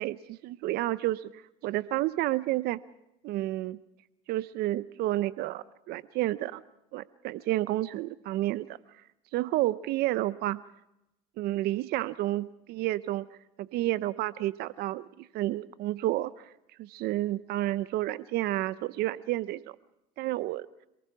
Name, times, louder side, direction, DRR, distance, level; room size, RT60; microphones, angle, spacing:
voice 1, 0.0-2.8 3.2-3.8 4.3-6.6 6.9-8.8 9.3-10.6 11.4-13.3 13.6-16.5 16.8-19.8 20.2-20.7, right 16 dB, 65° right, 16 dB, 0.7 m, -30 dB
27.0 x 19.5 x 5.9 m, 0.86 s
supercardioid pair, 95°, 18 cm